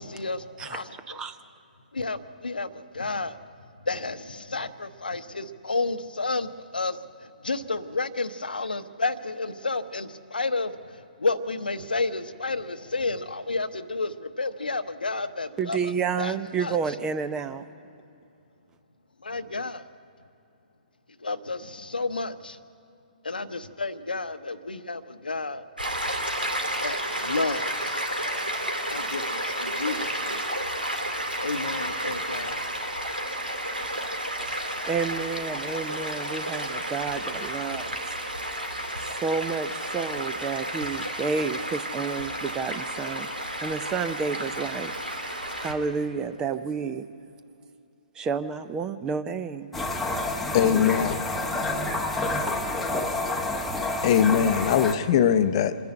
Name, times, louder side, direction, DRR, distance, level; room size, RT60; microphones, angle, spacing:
voice 1, 0.0-1.2 1.9-15.9 16.2-16.8 19.2-19.9 21.2-22.6 23.2-25.6 26.8-28.0 28.9-30.5 31.0-32.6, left 3 dB, 75° left, 11 dB, 0.8 m, -31 dB
voice 2, 1.1-1.4 15.6-17.6 34.8-38.0 39.0-43.3 43.6-47.0 48.1-49.7, right 5 dB, 15° right, 12 dB, 0.5 m, -30 dB
Stream, 25.8-45.7, right 1 dB, 85° right, 2.6 m, -31 dB
sound 1, 49.7-54.9, left 2 dB, 5° left, 0.9 m, -28 dB
voice 3, 50.5-51.2 54.0-55.8, left 8 dB, 35° left, 11 dB, 0.7 m, -21 dB
25.5 x 10.5 x 9.7 m, 2.6 s
figure-of-eight pair, 125°, 5 cm